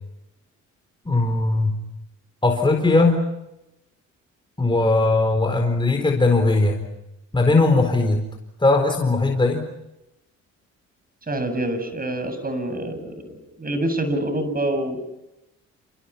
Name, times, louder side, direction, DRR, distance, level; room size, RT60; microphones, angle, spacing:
voice 1, 1.1-1.8 2.4-3.3 4.6-6.8 7.3-8.2 8.6-9.7, left 2 dB, 15° left, 3 dB, 4.2 m, -19 dB
voice 2, 11.3-15.0, right 1 dB, 30° right, 9 dB, 7.5 m, -26 dB
29.0 x 27.5 x 5.8 m, 0.90 s
cardioid pair, 90°, 30 cm